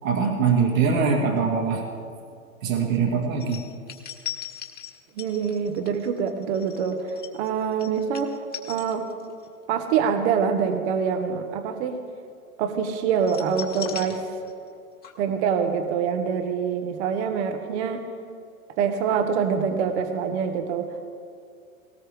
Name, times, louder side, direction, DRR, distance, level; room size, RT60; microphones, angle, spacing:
voice 1, 0.0-1.8 2.6-3.6, right 5 dB, 70° right, 0 dB, 2.5 m, -22 dB
sound 1, 3.4-9.5 9.8-10.1 13.2-14.8 15.0-15.1, left 9 dB, 20° left, 1.9 m, -38 dB
voice 2, 5.2-8.4 8.7-9.1 9.7-12.0 12.6-14.3 15.2-18.0 18.8-21.1, right 6 dB, 50° right, 6 dB, 1.4 m, -25 dB
18.5 x 18.5 x 3.5 m, 2.4 s
hypercardioid pair, 115°, 41 cm